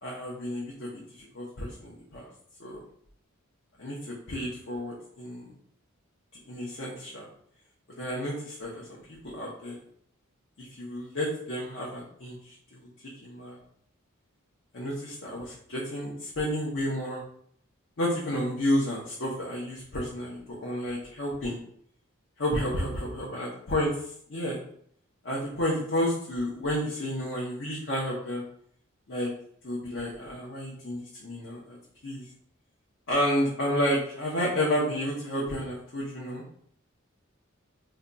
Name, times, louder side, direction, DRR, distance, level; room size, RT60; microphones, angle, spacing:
voice 1, 0.0-2.2 2.6-2.8 3.8-5.5 6.3-7.3 8.0-9.0 9.2-9.8 10.6-12.9 13.2-13.6 14.7-17.2 18.0-21.6 22.4-23.9 24.3-24.6 25.2-28.4 29.1-29.3 29.6-31.8 32.0-32.2 33.1-36.4, equal, 60° left, -5 dB, 0.7 m, -31 dB
2.8 x 2.2 x 3.8 m, 0.65 s
head